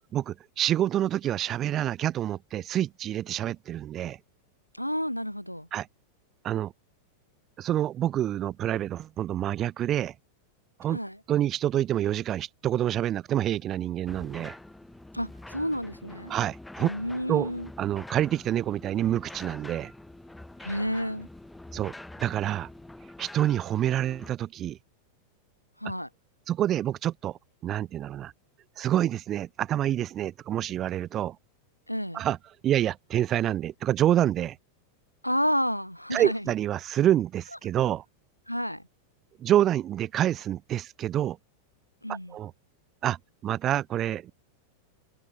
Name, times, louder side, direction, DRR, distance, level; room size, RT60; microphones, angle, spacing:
voice 1, 0.1-4.2 5.7-5.9 6.4-6.7 7.6-10.1 10.8-11.0 11.3-14.6 16.3-16.9 17.3-17.5 17.8-19.9 21.7-22.7 23.2-24.8 26.5-28.3 28.8-31.4 32.1-32.4 32.6-34.6 36.1-38.0 39.4-41.4 42.1-42.5 43.0-43.2 43.4-44.3, right 12 dB, 30° right, 1.1 m, -27 dB
voice 2, 4.7-5.7 10.9-11.2 15.1-16.3 16.8-17.7 20.6-21.3 25.8-26.1 31.9-32.2 35.2-36.4 38.5-38.8 42.0-42.3, equal, 90° left, 2.9 m, -30 dB
sound 1, 14.1-24.3, left 1 dB, 5° left, 5.3 m, -45 dB
figure-of-eight pair, 90°, 0 cm